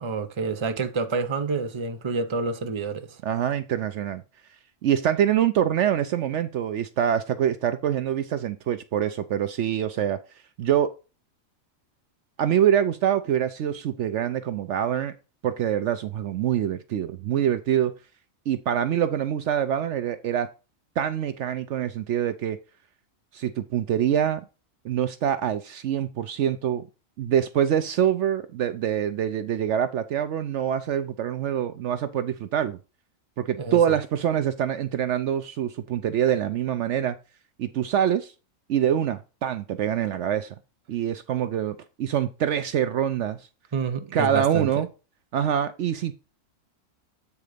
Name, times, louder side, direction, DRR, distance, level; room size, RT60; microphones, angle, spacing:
voice 1, 0.0-3.2 33.6-34.0 43.7-44.7, right 4 dB, 25° right, 0.7 m, -28 dB
voice 2, 3.2-4.2 4.8-10.2 10.6-10.9 12.4-15.1 15.4-17.9 18.5-20.5 21.0-22.6 23.3-24.4 24.8-26.8 27.2-32.8 33.4-37.2 37.6-38.3 38.7-40.5 40.9-43.4 44.1-44.9 45.3-46.1, right 9 dB, 65° right, 0.8 m, -25 dB
8.4 x 3.9 x 5.0 m
omnidirectional pair, 1.4 m